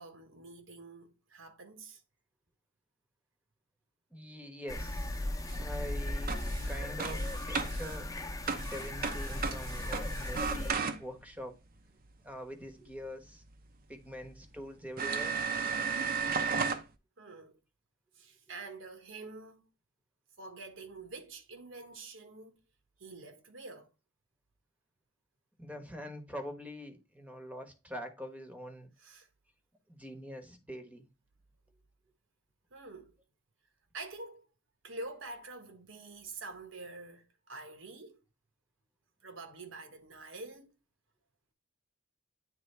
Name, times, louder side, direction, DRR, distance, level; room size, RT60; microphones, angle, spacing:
voice 1, 0.0-2.0 17.2-17.6 18.1-19.7 20.4-22.6 23.0-23.9 29.0-29.3 32.7-33.1 33.9-34.5 34.8-38.2 39.2-40.7, right 3 dB, 70° right, 1.4 m, -47 dB
voice 2, 4.1-5.2 5.6-6.4 6.7-8.1 8.6-11.6 12.2-13.4 13.9-15.4 25.6-28.9 29.9-31.1, equal, 10° right, 1.1 m, -44 dB
sound 1, 4.7-10.7, left 1 dB, 20° left, 1.0 m, -37 dB
sound 2, 5.5-11.3 13.5-13.6 14.2-14.3 15.0-16.8, right 5 dB, 45° right, 0.8 m, -35 dB
9.3 x 3.5 x 3.3 m
head